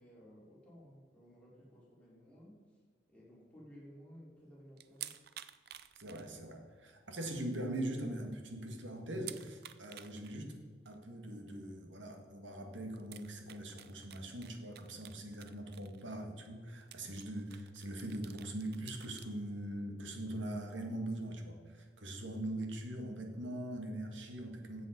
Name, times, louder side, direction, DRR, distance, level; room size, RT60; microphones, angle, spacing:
voice 1, 0.0-2.8 3.1-5.2, equal, 5° left, -7 dB, 3.9 m, -57 dB
sound 1, 4.8-6.7 7.1-7.2 7.6-7.7 8.0-8.1 9.2-10.4 10.9-11.0 12.3-12.4 13.0-16.1 16.4-16.5 16.8-19.3, right 12 dB, 55° right, 0.5 m, -51 dB
voice 2, 6.0-10.6 10.9-24.8, right 1 dB, 85° right, 4 dB, 1.9 m, -42 dB
14.0 x 7.7 x 5.2 m, 1.6 s
head